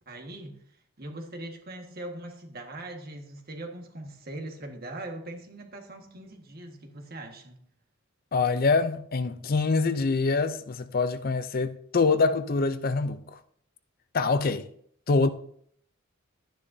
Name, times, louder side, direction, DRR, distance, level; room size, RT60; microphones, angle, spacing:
voice 1, 0.0-7.6, right 1 dB, 45° right, 1.6 m, -41 dB
voice 2, 8.3-13.4 14.1-14.6 15.1-15.3, left 4 dB, 45° left, 0.5 m, -25 dB
12.0 x 10.0 x 2.7 m
head